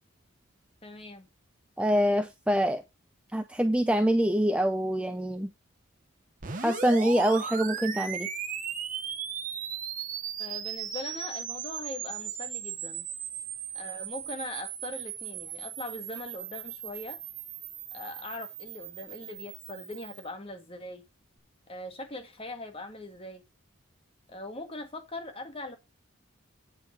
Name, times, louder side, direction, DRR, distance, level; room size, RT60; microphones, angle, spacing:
voice 1, 0.8-1.3 10.4-13.1 13.7-17.2 17.9-21.0 21.7-23.4 24.3-25.8, left 2 dB, 25° left, 1.7 m, -41 dB
voice 2, 1.8-2.8 3.3-5.5 6.6-8.3, equal, 5° right, 0.5 m, -25 dB
sound 1, 6.4-20.3, right 8 dB, 40° right, 1.2 m, -37 dB
8.9 x 5.0 x 5.0 m
head